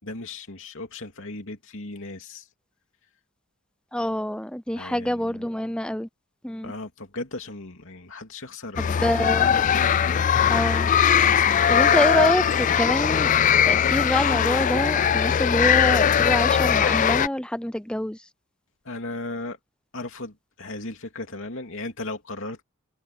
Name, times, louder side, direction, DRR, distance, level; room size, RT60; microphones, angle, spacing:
voice 1, 0.0-2.5 4.8-5.5 6.6-10.5 11.1-11.8 18.8-19.6 19.9-22.6, left 2 dB, 60° left, 3.1 m, -36 dB
voice 2, 3.9-6.1 6.4-6.7 8.8-9.5 10.5-10.9 11.7-13.3 13.6-18.2, left 1 dB, 5° left, 0.7 m, -26 dB
sound 1, 8.8-17.3, left 8 dB, 35° left, 0.3 m, -20 dB
head